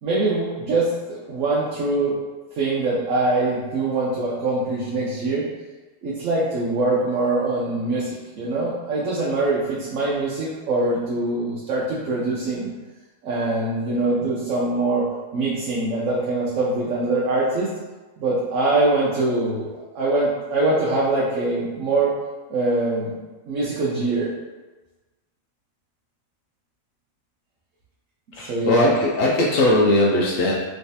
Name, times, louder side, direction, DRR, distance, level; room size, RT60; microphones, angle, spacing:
voice 1, 0.0-2.2 2.6-5.5 6.0-12.7 13.2-15.1 15.3-17.7 18.2-22.1 22.5-24.3 28.5-28.9, right 2 dB, 75° right, -6 dB, 1.0 m, -23 dB
voice 2, 28.3-30.5, left 1 dB, 75° left, -3 dB, 0.9 m, -19 dB
3.2 x 3.1 x 2.7 m, 1.2 s
omnidirectional pair, 1.4 m